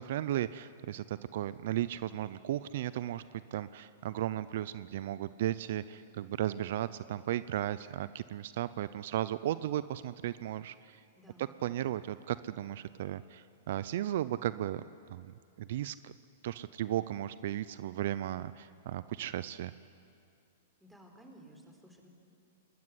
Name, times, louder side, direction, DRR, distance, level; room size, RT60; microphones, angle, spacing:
voice 1, 0.0-11.0 11.6-14.8 15.1-16.1 16.4-19.7, right 12 dB, 65° right, 16 dB, 0.6 m, -35 dB
voice 2, 11.2-11.6 20.8-22.1, right 1 dB, 5° right, 2 dB, 4.3 m, -56 dB
26.0 x 20.0 x 9.8 m, 2.5 s
hypercardioid pair, 130°, 0 cm